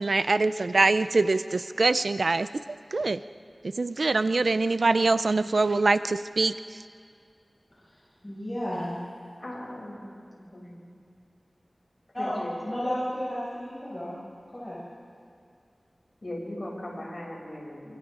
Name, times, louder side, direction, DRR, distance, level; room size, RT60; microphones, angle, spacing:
voice 1, 0.0-2.6 2.9-3.2 3.7-6.8, right 3 dB, 75° right, 13 dB, 0.4 m, -24 dB
voice 2, 7.8-9.0 12.1-14.1 14.5-14.8, equal, 25° left, -9 dB, 6.4 m, -33 dB
voice 3, 9.4-10.9 12.2-12.6 16.2-18.0, left 1 dB, 50° left, -4 dB, 7.1 m, -39 dB
29.0 x 25.0 x 3.8 m, 2.4 s
wide cardioid pair, 65°, 0 cm